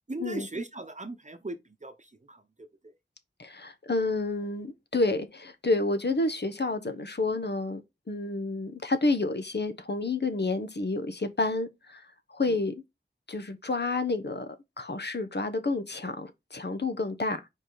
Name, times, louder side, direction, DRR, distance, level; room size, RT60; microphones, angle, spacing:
voice 1, 0.1-1.6 1.8-2.4 12.5-12.6, right 2 dB, 40° right, 0.9 m, -38 dB
voice 2, 3.4-7.8 8.1-12.0 12.3-12.7 13.3-14.5 14.8-17.4, left 2 dB, 60° left, 1.2 m, -29 dB
5.1 x 5.0 x 4.0 m
wide cardioid pair, 55°, 20 cm